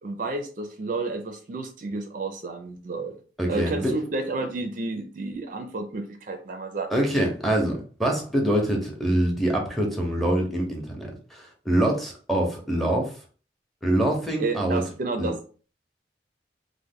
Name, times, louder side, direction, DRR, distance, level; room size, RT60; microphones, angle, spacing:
voice 1, 0.0-3.2 3.5-7.0 14.4-15.4, right 3 dB, 45° right, 5 dB, 0.4 m, -31 dB
voice 2, 3.4-3.9 6.9-13.1 13.8-14.8 15.2-15.3, right 1 dB, ahead, 1 dB, 0.6 m, -25 dB
3.1 x 2.1 x 3.5 m, 0.39 s
head